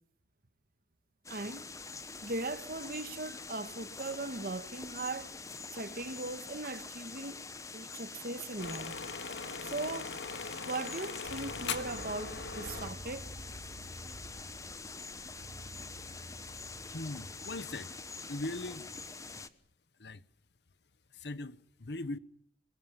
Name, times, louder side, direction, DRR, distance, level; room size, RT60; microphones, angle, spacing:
sound 1, 1.2-19.5, left 4 dB, 20° left, 1.1 m, -45 dB
voice 1, 1.3-1.7 2.2-5.3 5.7-7.4 7.7-9.0 9.6-10.2 10.6-13.3, right 2 dB, 55° right, 1.5 m, -39 dB
sound 2, 8.6-12.9, left 5 dB, 85° left, 1.9 m, -40 dB
sound 3, 11.2-19.1, equal, 80° right, 3.9 m, -50 dB
voice 2, 16.9-18.0 18.3-18.9 20.0-20.2 21.1-22.2, left 2 dB, 65° left, 1.1 m, -40 dB
26.0 x 22.5 x 7.4 m
head